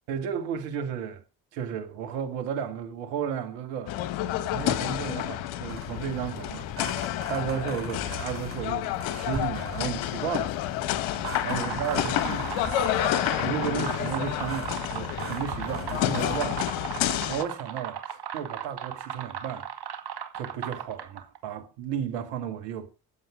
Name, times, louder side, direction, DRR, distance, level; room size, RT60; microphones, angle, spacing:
voice 1, 0.1-1.2 1.5-4.0 4.5-6.7 7.3-10.6 11.4-12.5 13.4-16.7 17.3-19.7 20.3-22.9, right 8 dB, 85° right, 1.8 m, -33 dB
sound 1, 3.9-17.4, left 13 dB, 80° left, 1.2 m, -29 dB
sound 2, 5.7-16.5, right 3 dB, 30° right, 5.0 m, -42 dB
sound 3, 11.0-21.4, right 8 dB, 55° right, 2.1 m, -36 dB
20.0 x 7.8 x 5.0 m
hypercardioid pair, 45°, 47 cm